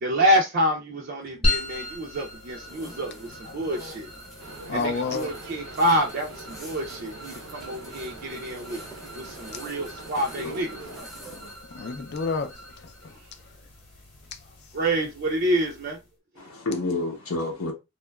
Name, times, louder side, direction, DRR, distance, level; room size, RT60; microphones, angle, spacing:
voice 1, 0.0-4.1 4.7-8.8 9.1-11.1 14.7-16.0, equal, 45° right, 0.4 m, -27 dB
sound 1, 1.4-16.1, left 1 dB, 25° left, 0.9 m, -37 dB
sound 2, 2.6-11.7, right 1 dB, ahead, 0.6 m, -48 dB
voice 2, 3.4-4.0 4.6-5.3 9.1-9.5 11.7-13.7 14.3-14.7, left 4 dB, 50° left, 0.4 m, -33 dB
sound 3, 4.4-11.0, right 3 dB, 85° right, 0.6 m, -44 dB
voice 3, 10.4-11.5 16.4-17.7, left 2 dB, 80° left, 0.7 m, -31 dB
2.9 x 2.2 x 2.2 m
head